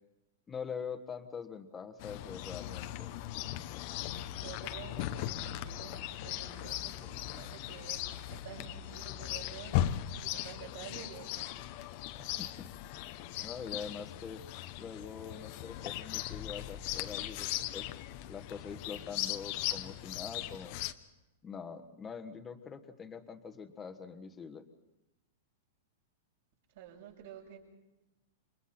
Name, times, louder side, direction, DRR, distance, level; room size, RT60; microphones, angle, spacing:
voice 1, 0.5-3.1 12.4-12.5 13.4-14.4 14.8-17.9 18.3-20.8 21.4-24.6, left 6 dB, 15° left, 8 dB, 1.4 m, -44 dB
Chirp tweet, 2.0-20.9, left 13 dB, 40° left, 1.0 m, -38 dB
voice 2, 4.3-8.0 8.3-11.5 26.7-27.6, right 9 dB, 65° right, -8 dB, 7.5 m, -50 dB
29.5 x 25.5 x 4.4 m, 0.96 s
supercardioid pair, 160°, 0 cm